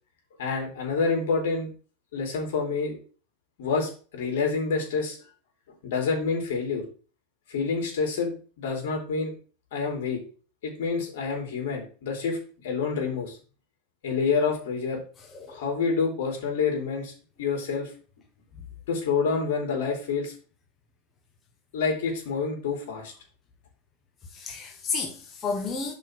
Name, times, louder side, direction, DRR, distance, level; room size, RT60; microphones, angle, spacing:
voice 1, 0.4-1.7 2.1-3.0 3.6-5.2 5.8-6.8 7.5-9.3 9.7-10.2 10.6-12.4 12.6-13.4 14.0-15.0 15.5-17.1 17.4-17.9 18.9-20.3 21.7-23.1, left 5 dB, 75° left, 3.3 m, -27 dB
voice 2, 24.3-25.9, left 4 dB, 25° left, 1.2 m, -32 dB
5.3 x 4.6 x 6.1 m
supercardioid pair, 130°, 0 cm